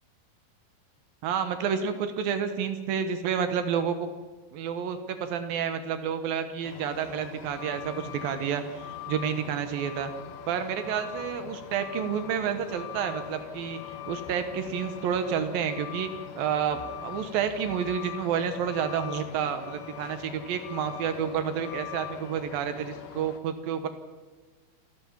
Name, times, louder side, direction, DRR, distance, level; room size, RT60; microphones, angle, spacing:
voice 1, 1.2-4.1 4.5-10.1 10.5-13.8 14.1-16.1 16.3-23.9, right 7 dB, 70° right, 9 dB, 2.2 m, -30 dB
Truck, 6.6-23.4, left 11 dB, 65° left, 2.9 m, -41 dB
28.0 x 13.5 x 7.4 m, 1.3 s
omnidirectional pair, 5.7 m